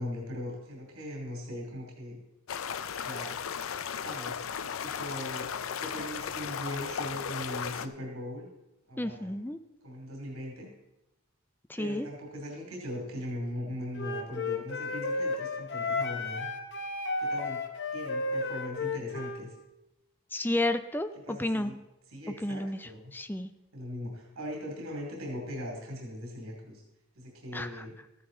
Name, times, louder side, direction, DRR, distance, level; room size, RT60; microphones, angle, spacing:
voice 1, 0.0-2.2 3.0-3.4 4.0-4.4 4.8-5.5 5.8-8.5 8.9-9.4 9.8-10.7 11.8-16.5 17.2-17.6 17.9-19.5 21.3-21.8 22.1-23.0 23.7-26.8 27.2-27.9, equal, 85° right, 0 dB, 2.6 m, -39 dB
sound 1, 2.5-7.9, left 7 dB, 75° left, 0.5 m, -36 dB
voice 2, 9.0-9.6 11.7-12.1 20.3-21.7 22.4-23.5 27.5-27.8, left 1 dB, 10° left, 10 dB, 0.5 m, -32 dB
Wind instrument woodwind instrument, 14.0-19.4, left 3 dB, 55° left, 1.0 m, -33 dB
13.5 x 9.7 x 3.8 m, 0.92 s
head